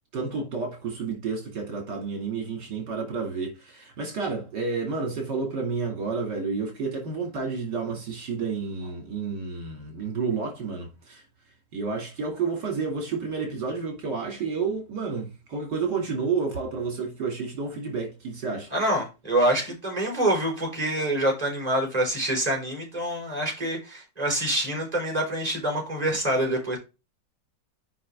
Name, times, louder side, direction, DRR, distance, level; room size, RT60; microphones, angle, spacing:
voice 1, 0.1-11.2 11.7-18.7, right 4 dB, 70° right, 3.1 m, -30 dB
voice 2, 18.7-26.8, right 1 dB, 20° right, 4.6 m, -26 dB
7.6 x 5.5 x 3.6 m
omnidirectional pair, 2.0 m